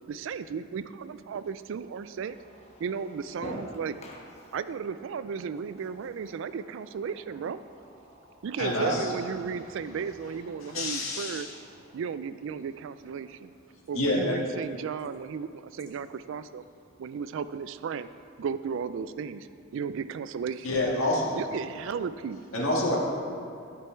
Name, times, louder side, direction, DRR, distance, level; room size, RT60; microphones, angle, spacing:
voice 1, 0.1-2.4 2.8-3.9 4.5-7.6 8.4-11.5 11.9-13.5 13.9-16.6 17.0-18.1 18.4-19.5 19.7-20.8 21.3-22.5, right 6 dB, 65° right, 13 dB, 0.3 m, -34 dB
voice 2, 2.4-2.8 3.4-4.6 6.3-6.6 8.0-9.0, equal, 30° left, -3 dB, 1.3 m, -42 dB
voice 3, 8.6-9.1 10.6-11.5 13.9-14.3 20.6-21.4 22.5-23.0, left 1 dB, 85° left, -4 dB, 1.8 m, -27 dB
12.5 x 5.2 x 4.4 m, 2.6 s
head